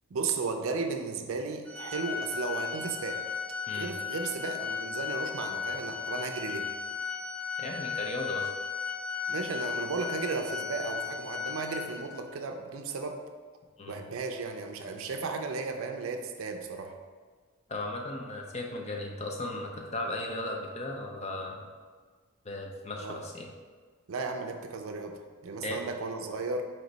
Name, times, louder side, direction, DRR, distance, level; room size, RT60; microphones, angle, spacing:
voice 1, 0.1-3.2 3.7-6.7 9.3-13.2 13.9-17.0 23.0-23.2 24.1-26.6, right 4 dB, 65° right, 5 dB, 0.4 m, -35 dB
Organ, 1.7-12.3, left 6 dB, 10° left, 0.9 m, -36 dB
voice 2, 7.6-8.5 13.8-14.0 17.7-21.7 22.4-23.5 25.6-25.8, left 2 dB, 30° left, 1 dB, 0.5 m, -36 dB
4.4 x 3.0 x 3.9 m, 1.5 s
head